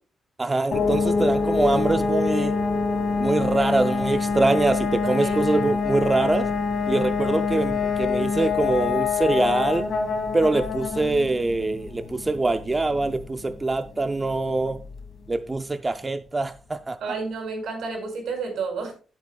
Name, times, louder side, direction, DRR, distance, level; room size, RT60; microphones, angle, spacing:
voice 1, 0.4-2.6 3.2-6.5 6.9-9.9 10.3-14.8 15.3-17.0, right 2 dB, 20° right, 0.5 m, -24 dB
sound 1, 0.7-15.3, left 4 dB, 50° left, 2.4 m, -26 dB
voice 2, 5.2-5.6 17.0-18.9, right 4 dB, 75° right, 5.7 m, -31 dB
16.0 x 8.2 x 2.3 m
cardioid pair, 130°, 0 cm